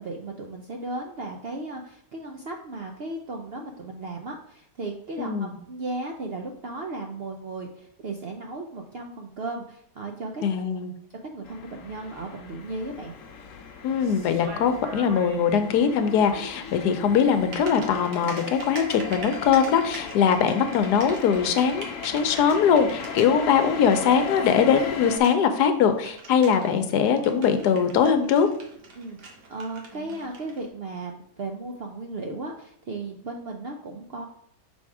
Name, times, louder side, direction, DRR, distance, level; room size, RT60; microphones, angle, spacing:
voice 1, 0.0-10.4 11.2-13.1 28.9-34.3, right 2 dB, 65° right, 2 dB, 0.6 m, -35 dB
voice 2, 5.2-5.6 10.4-10.9 13.8-28.5, left 7 dB, 90° left, 8 dB, 1.3 m, -21 dB
sound 1, 11.4-25.2, left 6 dB, 60° left, 1.0 m, -37 dB
Typing, 12.6-30.7, right 3 dB, 90° right, 1.7 m, -44 dB
6.1 x 3.5 x 4.8 m, 0.66 s
omnidirectional pair, 1.7 m